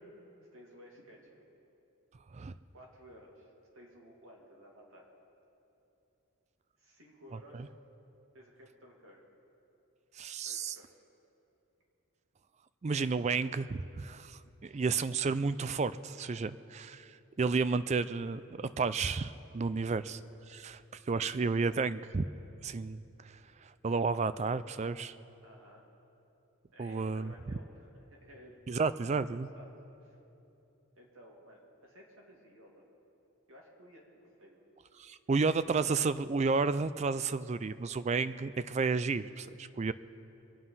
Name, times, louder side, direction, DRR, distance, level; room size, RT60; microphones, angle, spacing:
voice 1, 0.5-1.4 2.7-5.1 6.8-7.7 8.3-9.2 10.4-11.0 14.6-14.9 25.4-25.9 26.7-29.2 29.5-29.7 30.0-30.2 31.0-32.9 33.5-34.6, equal, 70° right, -1 dB, 2.5 m, -56 dB
voice 2, 10.2-10.7 12.8-17.1 17.4-20.2 20.5-20.8 21.1-22.3 22.6-25.2 26.8-27.3 28.7-29.5 35.0-39.9, right 4 dB, 30° right, 14 dB, 0.3 m, -32 dB
24.5 x 9.4 x 5.6 m, 2.9 s
head